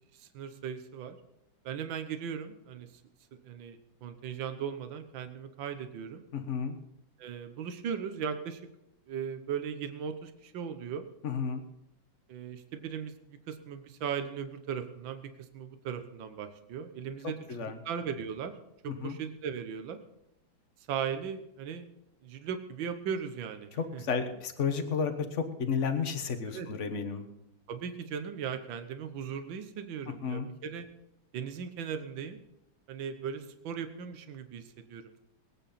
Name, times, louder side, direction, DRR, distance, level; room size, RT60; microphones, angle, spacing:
voice 1, 0.2-1.2 1.6-2.9 3.4-6.2 7.2-8.6 9.1-11.1 12.3-18.5 18.8-20.0 20.9-21.9 22.2-24.0 26.5-26.7 27.7-30.9 31.3-32.4 32.9-35.2, right 7 dB, 75° right, 8 dB, 1.7 m, -38 dB
voice 2, 6.3-6.8 11.2-11.6 17.5-17.8 18.9-19.2 23.7-27.3 30.1-30.5, left 6 dB, 40° left, 7 dB, 1.4 m, -32 dB
21.0 x 9.1 x 4.2 m, 0.84 s
omnidirectional pair, 2.1 m